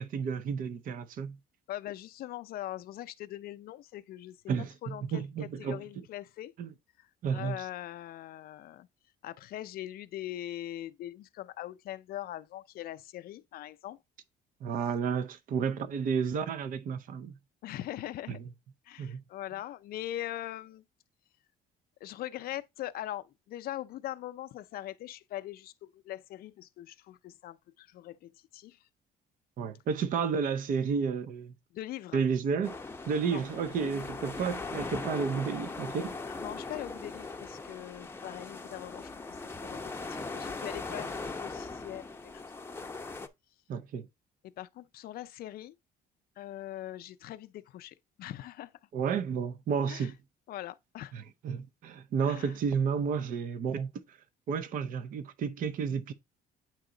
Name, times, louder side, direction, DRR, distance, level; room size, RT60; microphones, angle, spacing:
voice 1, 0.0-1.4 4.5-5.8 6.6-6.7 7.2-7.7 14.6-17.3 18.3-18.4 19.0-19.2 29.6-31.5 32.1-32.8 33.1-36.2 43.7-44.1 48.9-50.1 51.1-54.2 54.5-56.1, right 6 dB, 55° right, 0.6 m, -31 dB
voice 2, 1.7-4.4 4.8-6.5 7.0-8.9 9.2-14.0 17.6-18.4 18.9-20.8 22.0-28.8 31.7-32.2 33.3-33.4 33.8-34.2 36.4-39.1 39.6-42.4 42.8-42.9 44.6-45.7 46.4-48.7 49.9-50.1 50.5-51.1 52.2-52.6, left 13 dB, 65° left, 0.5 m, -41 dB
sound 1, 32.6-43.3, left 3 dB, 15° left, 0.6 m, -40 dB
8.9 x 3.0 x 3.8 m
cardioid pair, 110°, 17 cm